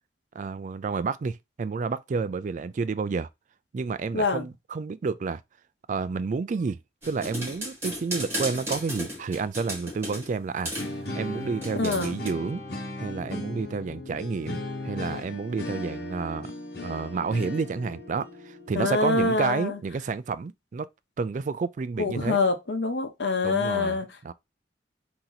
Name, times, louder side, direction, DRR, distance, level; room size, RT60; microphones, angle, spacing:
voice 1, 0.3-3.3 3.7-5.4 5.9-6.8 7.0-10.7 11.1-12.6 13.0-16.5 16.8-20.9 21.2-22.4 23.4-24.0 24.2-24.3, right 4 dB, 45° right, 0.3 m, -30 dB
voice 2, 4.1-4.4 11.8-12.2 18.7-19.8 22.0-24.1, left 3 dB, 85° left, 1.0 m, -25 dB
sound 1, 7.0-10.3 10.7-10.9 11.6-12.3, equal, 15° right, 1.9 m, -34 dB
sound 2, 10.8-19.7, left 2 dB, 65° left, 1.3 m, -37 dB
3.9 x 3.0 x 3.9 m
head